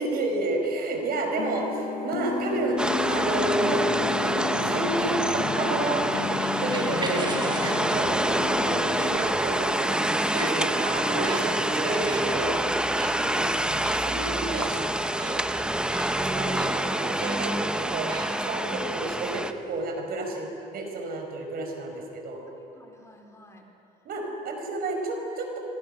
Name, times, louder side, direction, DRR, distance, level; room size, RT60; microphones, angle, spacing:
voice 1, 0.0-3.9 4.2-6.0 6.6-12.6 13.1-14.8 15.2-15.4 16.3-18.1 18.4-22.4 24.1-25.6, right 2 dB, 65° right, 3 dB, 5.5 m, -31 dB
sound 1, 1.4-9.2, left 7 dB, 60° left, 2.3 m, -33 dB
sound 2, 2.2-19.9, right 2 dB, 25° right, 3.7 m, -42 dB
sound 3, 2.8-19.5, right 1 dB, 5° right, 1.0 m, -27 dB
voice 2, 22.5-24.1, left 1 dB, 15° left, 2 dB, 4.2 m, -54 dB
25.5 x 25.5 x 6.8 m, 2.9 s
cardioid pair, 110°, 17 cm